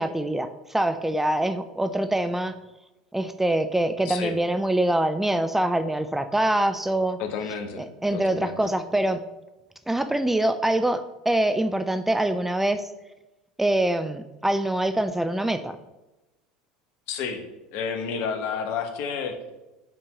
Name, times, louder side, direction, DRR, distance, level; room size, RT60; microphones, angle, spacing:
voice 1, 0.0-2.5 3.1-7.2 8.0-9.2 9.9-12.9 13.6-15.8, right 1 dB, 5° right, 9 dB, 0.4 m, -24 dB
voice 2, 4.0-4.3 7.2-7.8 8.1-8.6 17.1-17.4 17.7-19.5, left 6 dB, 55° left, 6 dB, 1.1 m, -30 dB
5.9 x 4.5 x 6.5 m, 1.0 s
figure-of-eight pair, 70°, 4 cm